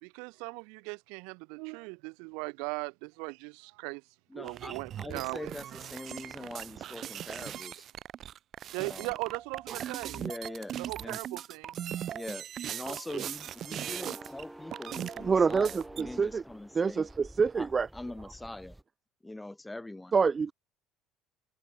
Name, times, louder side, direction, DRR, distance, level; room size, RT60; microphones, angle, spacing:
voice 1, 0.0-4.0 4.3-5.5 8.7-10.2 10.8-11.8 14.0-14.1, right 35 dB, 80° right, 2.4 m, -39 dB
voice 2, 4.3-7.9 8.7-9.1 10.1-11.2 12.1-17.1 17.6-17.7 17.9-18.8 19.2-20.1, left 2 dB, 10° left, 5.3 m, -43 dB
sound 1, 4.5-14.4 14.7-16.1, right 10 dB, 55° right, 6.1 m, -39 dB
sound 2, 13.4-18.8, right 1 dB, 5° right, 5.6 m, -49 dB
voice 3, 15.2-16.4 16.7-17.9 20.1-20.5, right 5 dB, 30° right, 0.6 m, -26 dB
supercardioid pair, 85°, 0 cm